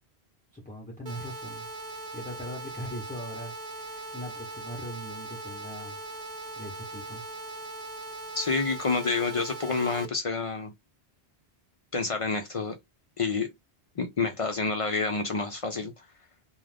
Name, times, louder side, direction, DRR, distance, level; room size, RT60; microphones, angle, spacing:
voice 1, 0.5-1.7 2.1-6.0 6.6-7.2, equal, 10° left, 0.7 m, -40 dB
sound 1, 1.1-10.1, right 2 dB, 50° right, 0.6 m, -40 dB
voice 2, 8.3-10.7 11.9-12.8 13.2-13.5 14.0-15.9, left 4 dB, 50° left, 0.4 m, -28 dB
2.4 x 2.3 x 3.3 m
omnidirectional pair, 1.1 m